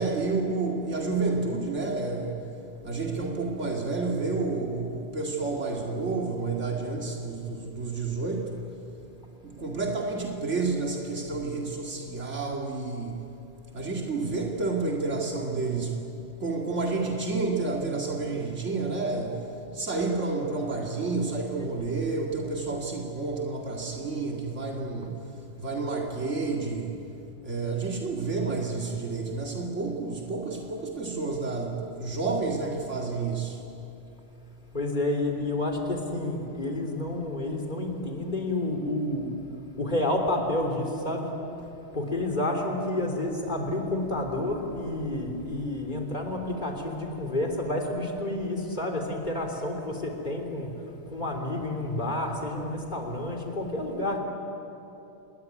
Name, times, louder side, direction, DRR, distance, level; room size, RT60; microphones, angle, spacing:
voice 1, 0.0-2.5 2.8-8.7 9.4-13.3 13.7-16.1 16.4-27.1 27.4-33.6, right 3 dB, 85° right, 2.6 m, -30 dB
voice 2, 34.7-39.4 39.8-41.3 41.9-50.8 51.1-54.2, left 1 dB, 40° left, 3.6 m, -29 dB
28.0 x 21.0 x 9.6 m
omnidirectional pair, 1.2 m